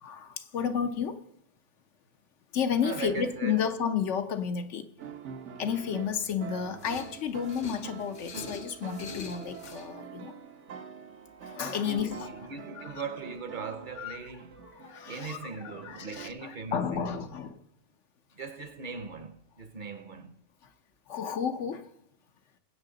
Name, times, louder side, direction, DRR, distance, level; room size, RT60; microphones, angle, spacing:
voice 1, 0.0-1.2 2.5-4.9 5.6-10.3 11.4-12.3 12.8-12.9 14.0-14.2 14.7-17.6 21.1-21.9, left 7 dB, 85° left, 1.2 m, -32 dB
voice 2, 2.8-3.6 11.8-14.6 15.1-17.3 18.3-20.4, right 5 dB, 50° right, 0.8 m, -40 dB
sound 1, 5.0-16.3, right 7 dB, 85° right, 1.1 m, -45 dB
sound 2, 6.8-9.9, left 4 dB, 50° left, 0.8 m, -44 dB
20.5 x 8.3 x 3.9 m
omnidirectional pair, 1.2 m